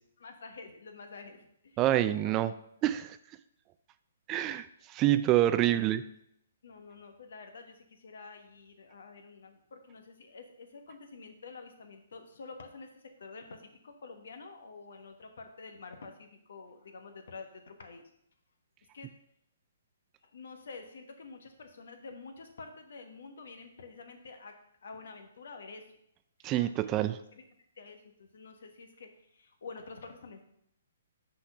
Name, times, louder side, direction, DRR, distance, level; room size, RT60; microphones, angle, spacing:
voice 1, 0.2-1.8 2.1-2.5 5.6-5.9 6.6-18.1 18.9-19.1 20.2-24.5 24.8-25.8 26.4-27.4 27.8-30.4, left 4 dB, 70° left, 6 dB, 1.2 m, -48 dB
voice 2, 1.8-2.5 2.8-3.2 4.3-6.0 26.4-27.2, right 13 dB, 25° right, 13 dB, 0.3 m, -27 dB
5.7 x 4.3 x 5.6 m, 0.74 s
hypercardioid pair, 135°, 0 cm